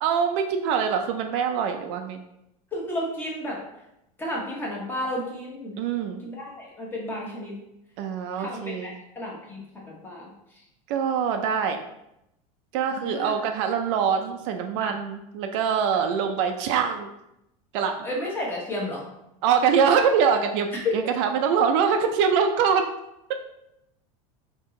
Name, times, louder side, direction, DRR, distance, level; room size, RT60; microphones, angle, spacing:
voice 1, 0.0-2.2 5.8-6.2 8.0-8.9 10.9-11.8 12.7-17.1 17.7-18.1 19.4-20.7 20.9-22.9, right 7 dB, 60° right, 6 dB, 0.5 m, -24 dB
voice 2, 2.7-3.6 4.2-5.8 6.2-7.6 8.4-10.3 12.9-13.3 14.8-15.0 16.0-16.1 18.0-19.0 20.7-20.9, left 1 dB, 10° left, -3 dB, 1.0 m, -32 dB
4.5 x 3.0 x 3.6 m, 0.85 s
supercardioid pair, 160°, 18 cm